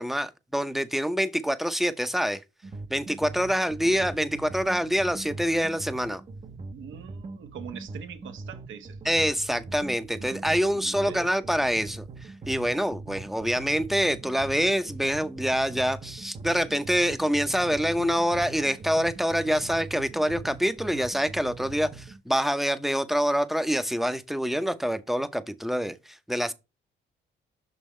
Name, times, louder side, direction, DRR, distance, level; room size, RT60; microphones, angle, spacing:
voice 1, 0.0-2.4 2.9-6.2 9.0-26.5, equal, ahead, 0.8 m, -26 dB
sound 1, 2.6-22.2, right 3 dB, 30° right, 0.9 m, -41 dB
voice 2, 6.7-9.0 10.2-11.3, right 8 dB, 75° right, 1.4 m, -43 dB
6.2 x 5.5 x 3.2 m
cardioid pair, 90°, 20 cm